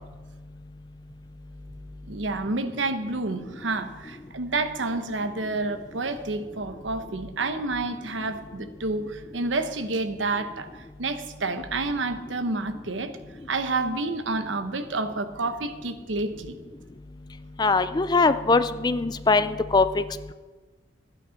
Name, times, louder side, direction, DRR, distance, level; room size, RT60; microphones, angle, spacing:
voice 1, 2.1-10.7 11.0-13.1 13.5-16.6, right 3 dB, 90° right, 9 dB, 1.0 m, -29 dB
voice 2, 17.6-20.0, left 3 dB, 20° left, 13 dB, 0.4 m, -21 dB
13.0 x 9.1 x 5.7 m, 1.3 s
head